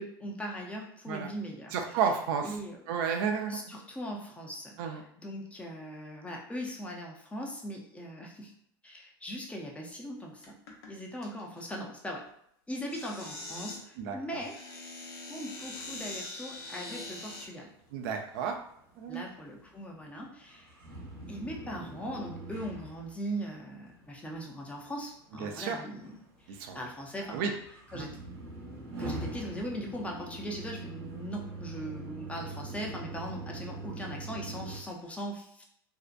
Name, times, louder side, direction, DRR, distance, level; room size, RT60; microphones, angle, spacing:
voice 1, 0.0-1.7 2.4-2.8 3.5-8.5 8.8-10.5 10.9-12.3 12.7-14.6 15.3-17.7 19.1-20.8 21.3-27.5 27.9-28.2 29.0-35.6, equal, 10° left, -1 dB, 0.6 m, -40 dB
voice 2, 1.7-2.6 2.9-3.7 4.8-5.0 14.0-14.4 17.9-18.6 19.0-19.2 25.4-25.8 26.5-26.8 27.3-27.5 27.9-28.1, right 6 dB, 70° right, 4 dB, 0.5 m, -32 dB
sound 1, 10.4-10.9 11.2-11.6 12.8-13.8 14.3-17.5 18.1-18.2 19.0-19.3, left 2 dB, 80° left, 0.7 m, -43 dB
sound 2, 16.6-34.8, right 2 dB, 85° right, 0.9 m, -44 dB
2.6 x 2.1 x 2.5 m, 0.71 s
hypercardioid pair, 100°, 12 cm